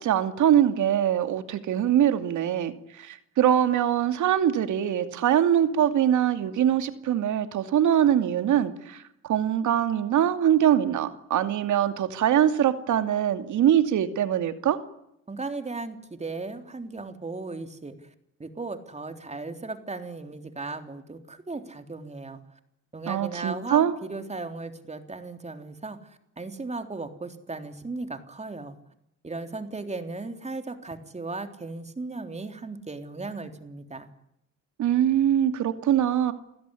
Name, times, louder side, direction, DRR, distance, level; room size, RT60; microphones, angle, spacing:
voice 1, 0.0-14.8 23.1-23.9 34.8-36.3, right 10 dB, 75° right, 9 dB, 2.6 m, -23 dB
voice 2, 15.3-18.0 18.4-22.4 22.9-28.8 29.2-34.1, right 3 dB, 20° right, 7 dB, 3.5 m, -36 dB
29.0 x 16.5 x 10.0 m, 0.82 s
cardioid pair, 90°, 30 cm